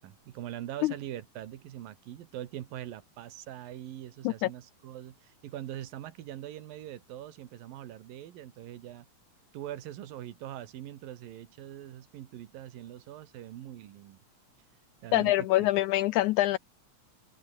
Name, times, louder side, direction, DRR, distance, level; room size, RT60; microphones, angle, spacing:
voice 1, 0.0-9.1 9.5-14.2 15.0-15.7, right 12 dB, 90° right, 3.3 m, -42 dB
voice 2, 15.1-16.6, left 16 dB, 80° left, 1.7 m, -25 dB
omnidirectional pair, 3.9 m